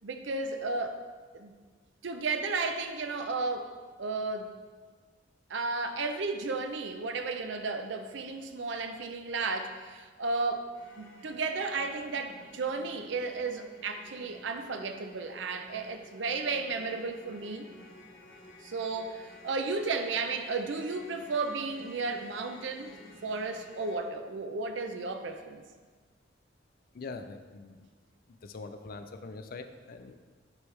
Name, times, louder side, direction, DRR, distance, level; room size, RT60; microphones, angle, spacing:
voice 1, 0.0-1.0 1.3-1.5 2.0-3.7 4.0-4.5 5.5-17.7 18.6-22.9 23.2-25.6, right 3 dB, 70° right, 6 dB, 0.6 m, -33 dB
sound 1, 10.7-24.0, left 1 dB, 90° left, 2.0 m, -53 dB
voice 2, 26.9-27.9 28.3-30.2, left 3 dB, 50° left, 8 dB, 0.4 m, -43 dB
8.4 x 4.6 x 3.3 m, 1.5 s
head